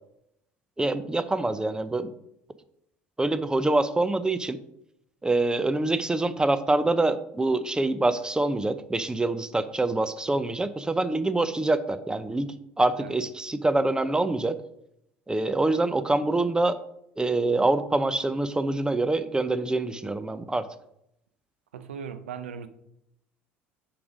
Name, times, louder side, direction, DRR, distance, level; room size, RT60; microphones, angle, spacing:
voice 1, 0.8-2.1 3.2-4.6 5.2-14.6 15.3-16.8 17.2-20.7, right 2 dB, 10° right, 0.6 m, -25 dB
voice 2, 21.7-22.7, right 7 dB, 80° right, 0.6 m, -38 dB
6.9 x 4.9 x 5.1 m
figure-of-eight pair, 60°, 6 cm